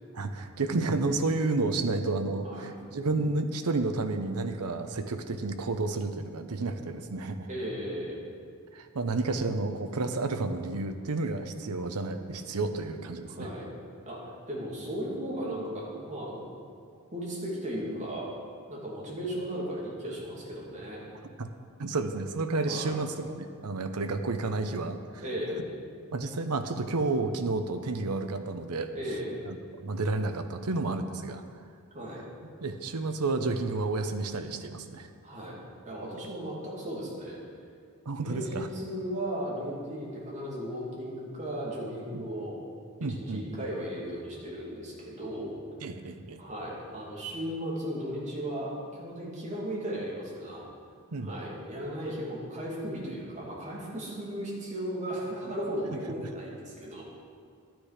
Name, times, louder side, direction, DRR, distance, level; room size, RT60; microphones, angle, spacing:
voice 1, 0.1-7.5 8.7-13.5 21.4-21.5 21.8-25.2 26.1-28.9 29.4-31.4 32.6-35.1 38.1-38.7 42.1-42.3 43.0-43.6 45.8-46.4 51.1-51.3, right 3 dB, 85° right, 8 dB, 0.8 m, -31 dB
voice 2, 7.5-8.2 13.4-13.7 14.0-16.4 17.1-18.3 18.7-21.0 22.6-23.0 25.2-25.6 28.9-29.4 31.9-32.2 35.2-35.6 35.8-37.4 38.2-42.6 43.2-45.5 46.4-50.7 51.2-57.0, equal, 35° right, -5 dB, 2.6 m, -36 dB
12.0 x 9.2 x 5.0 m, 2.2 s
head